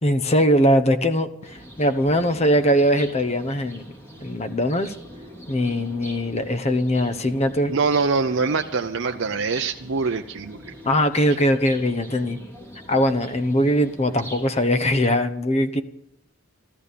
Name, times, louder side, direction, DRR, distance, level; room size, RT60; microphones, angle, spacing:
voice 1, 0.0-3.8 4.2-4.9 5.5-7.7 10.8-12.4 12.9-15.8, equal, 30° left, 10 dB, 1.0 m, -21 dB
sound 1, 1.4-15.2, equal, 10° left, 3.1 m, -43 dB
voice 2, 7.7-10.7, right 4 dB, 55° right, 5 dB, 0.6 m, -24 dB
14.0 x 13.5 x 6.8 m, 0.77 s
head